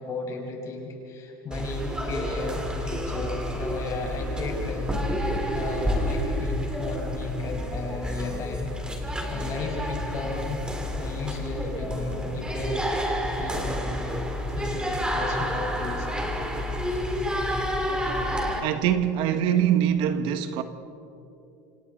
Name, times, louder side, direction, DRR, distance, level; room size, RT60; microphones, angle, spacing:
voice 1, 0.0-5.0 5.5-10.6 11.0-12.9 13.4-14.1 14.5-16.1, left 2 dB, 35° left, 5.2 m, -35 dB
sound 1, 1.5-18.6, equal, 10° right, 3.0 m, -29 dB
voice 2, 18.6-20.6, right 9 dB, 60° right, 1.3 m, -23 dB
28.5 x 26.5 x 4.2 m
supercardioid pair, 140°, 10 cm